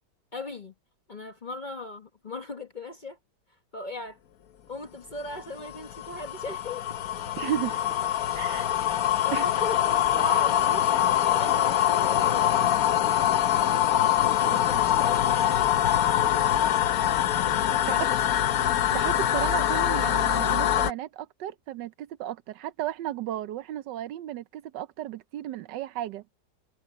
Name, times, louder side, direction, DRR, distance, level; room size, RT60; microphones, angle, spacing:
voice 1, 0.3-0.7 1.1-3.2 3.7-4.2 4.7-7.1 9.2-10.9 11.3-12.9 13.9-15.9 17.5-18.2, left 2 dB, 30° left, 1.1 m, -38 dB
sound 1, 5.3-20.9, left 11 dB, 60° left, 1.2 m, -24 dB
voice 2, 7.4-8.0 8.3-8.7 9.3-9.5 17.9-18.0 18.9-26.2, right 12 dB, 75° right, 1.3 m, -34 dB
omnidirectional pair, 1.9 m